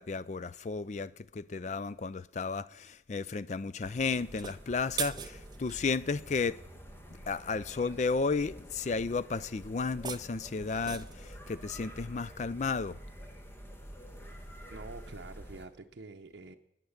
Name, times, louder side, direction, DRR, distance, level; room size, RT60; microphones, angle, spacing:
voice 1, 0.0-6.6 7.3-13.0, left 4 dB, 40° left, 0.4 m, -33 dB
sound 1, 3.8-15.7, equal, 15° left, 1.2 m, -48 dB
sound 2, 4.3-5.8 9.8-11.3, right 7 dB, 25° right, 0.4 m, -40 dB
voice 2, 14.7-16.6, right 3 dB, 70° right, 0.7 m, -47 dB
14.0 x 9.4 x 6.5 m
head